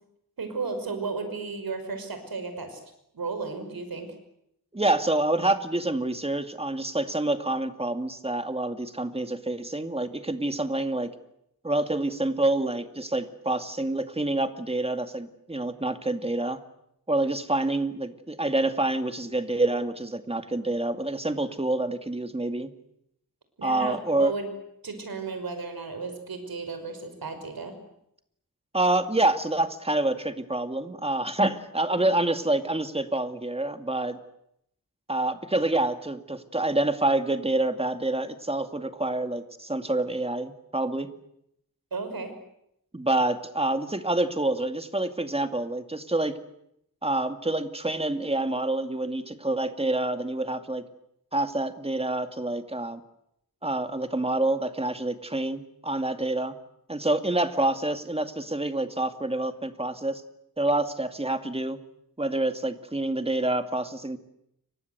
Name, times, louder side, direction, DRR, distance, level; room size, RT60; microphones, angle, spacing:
voice 1, 0.4-2.8 3.1-4.2 23.6-24.5 24.8-27.7 41.9-42.3, right 4 dB, 85° right, 8 dB, 5.8 m, -34 dB
voice 2, 4.7-11.1 11.6-16.6 17.1-22.7 23.6-24.3 28.7-34.2 35.1-41.1 42.9-46.4 47.0-50.9 51.3-53.0 53.6-56.6 56.9-60.2 60.6-61.8 62.2-64.2, right 2 dB, 15° right, 8 dB, 2.2 m, -27 dB
29.5 x 24.0 x 8.1 m, 0.78 s
wide cardioid pair, 90°, 35 cm